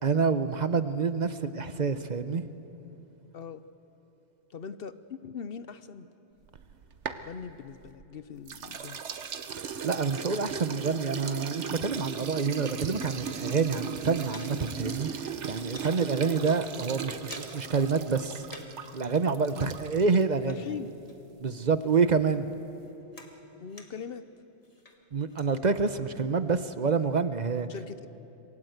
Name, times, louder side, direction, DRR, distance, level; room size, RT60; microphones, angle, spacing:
voice 1, 0.0-2.4 9.6-18.4 18.9-20.6 21.4-22.5 25.1-27.7, right 5 dB, 40° right, 11 dB, 0.9 m, -27 dB
voice 2, 3.3-3.6 4.5-6.1 7.1-9.0 19.5-19.7 20.4-21.0 23.6-24.3 27.7-28.1, left 6 dB, 60° left, 12 dB, 0.9 m, -41 dB
sound 1, 6.5-8.1 8.5-20.2, right 7 dB, 75° right, 1.2 m, -38 dB
sound 2, 13.0-13.6 13.9-15.0 15.3-16.0 16.4-16.6 16.9-17.8 18.0-18.9 19.1-21.5 21.8-24.2 24.6-25.5, left 2 dB, 30° left, 1.8 m, -51 dB
27.5 x 20.5 x 8.0 m, 3.0 s
omnidirectional pair, 1.2 m